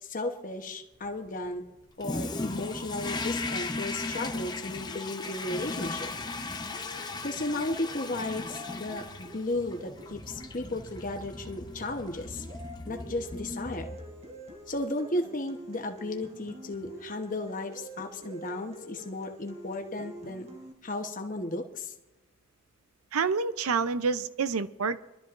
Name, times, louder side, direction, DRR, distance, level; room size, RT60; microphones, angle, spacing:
voice 1, 0.0-1.6 2.0-6.1 7.2-12.4 12.9-13.9 14.7-20.5 20.8-21.9, left 2 dB, 40° left, 4 dB, 1.1 m, -34 dB
Toilet flush, 2.0-14.3, left 3 dB, 20° left, 0.6 m, -37 dB
sound 1, 4.7-20.7, equal, 30° right, 1.3 m, -47 dB
voice 2, 23.1-25.0, right 5 dB, 85° right, 13 dB, 0.6 m, -28 dB
22.5 x 12.5 x 2.6 m, 1.0 s
head